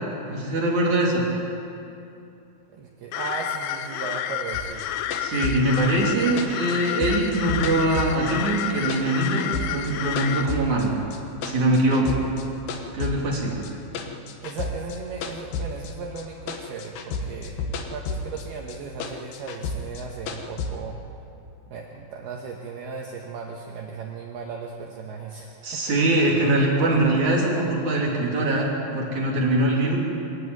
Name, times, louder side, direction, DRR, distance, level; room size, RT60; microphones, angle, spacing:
voice 1, 0.3-1.3 5.2-11.0 11.4-12.2 12.9-13.6 25.6-30.0, right 1 dB, 40° right, -3 dB, 3.9 m, -22 dB
voice 2, 2.7-4.8 14.4-17.6 17.9-21.0 21.7-25.8, right 5 dB, 70° right, 0 dB, 2.7 m, -36 dB
sound 1, 3.1-10.5, left 10 dB, 90° left, 3.5 m, -30 dB
sound 2, 4.5-8.6 8.9-10.9 11.1-12.4 12.7-16.2 16.5-18.4 18.7-20.7, left 3 dB, 70° left, 2.2 m, -31 dB
23.5 x 13.0 x 9.4 m, 2.6 s
omnidirectional pair, 5.7 m